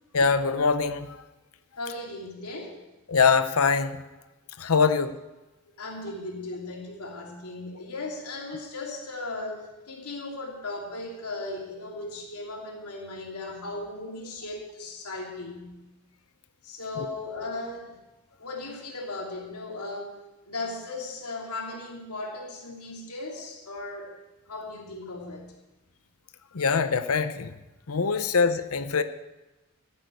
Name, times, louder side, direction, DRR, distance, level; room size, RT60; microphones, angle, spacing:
voice 1, 0.1-1.2 3.1-4.0 4.6-5.2 17.0-17.1 26.5-27.5 27.9-29.0, left 5 dB, 70° left, 10 dB, 0.8 m, -23 dB
voice 2, 1.8-2.8 5.6-15.8 16.6-17.9 18.4-20.2 20.4-24.2 24.5-25.5, left 2 dB, 90° left, 0 dB, 3.0 m, -37 dB
14.5 x 8.6 x 7.9 m, 1.0 s
head